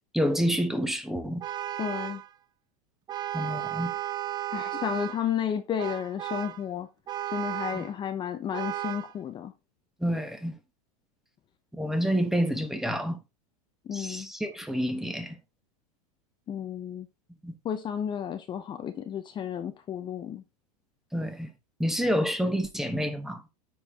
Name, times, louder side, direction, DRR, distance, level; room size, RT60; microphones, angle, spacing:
voice 1, 0.1-1.4 3.3-3.9 7.7-7.8 10.0-10.5 11.7-13.2 13.9-15.4 17.4-17.5 21.1-21.5 21.8-23.4, equal, ahead, 1.1 m, -28 dB
Vehicle horn car horn honking, 1.4-2.3 3.1-5.3 5.8-6.6 7.1-7.9 8.5-9.1, right 13 dB, 20° right, 0.4 m, -34 dB
voice 2, 1.8-2.2 4.5-6.9 7.3-9.5 13.9-14.3 16.5-17.1 17.6-20.4, left 9 dB, 25° left, 0.7 m, -32 dB
9.8 x 4.7 x 3.5 m
supercardioid pair, 135°, 19 cm